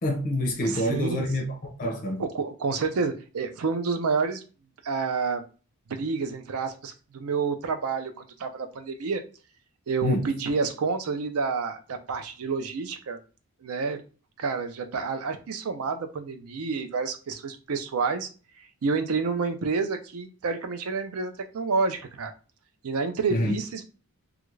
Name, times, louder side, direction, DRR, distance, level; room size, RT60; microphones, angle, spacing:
voice 1, 0.0-2.2 10.0-10.3 23.3-23.6, left 1 dB, 35° left, 0.5 m, -27 dB
voice 2, 0.6-1.3 2.2-4.4 4.8-5.4 5.9-9.2 9.9-13.2 13.6-14.0 14.4-18.3 18.8-22.3 22.8-23.8, right 4 dB, 75° right, 0.5 m, -29 dB
2.4 x 2.3 x 3.1 m
head